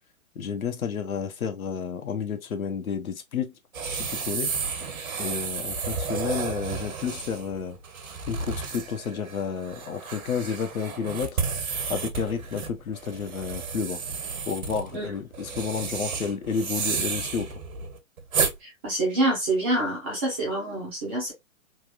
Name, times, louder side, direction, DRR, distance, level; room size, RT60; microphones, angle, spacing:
voice 1, 0.4-3.5 3.9-4.5 5.2-7.8 8.3-11.4 11.9-14.0 14.5-17.5, left 6 dB, 80° left, 0.9 m, -31 dB
sound 1, 3.7-18.5, right 5 dB, 80° right, 1.2 m, -32 dB
voice 2, 18.8-21.3, right 1 dB, 10° right, 0.4 m, -26 dB
3.5 x 2.4 x 2.4 m
hypercardioid pair, 140°, 41 cm